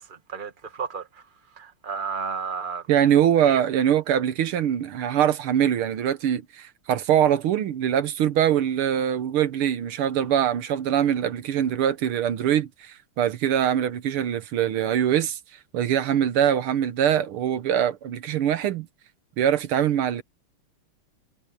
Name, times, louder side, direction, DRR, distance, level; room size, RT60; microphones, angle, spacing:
voice 1, 0.0-2.9 3.4-3.6, right 6 dB, 25° right, 1.6 m, -33 dB
voice 2, 2.9-15.4 15.7-18.9 19.4-20.2, right 10 dB, 80° right, 1.9 m, -23 dB
omnidirectional pair, 2.4 m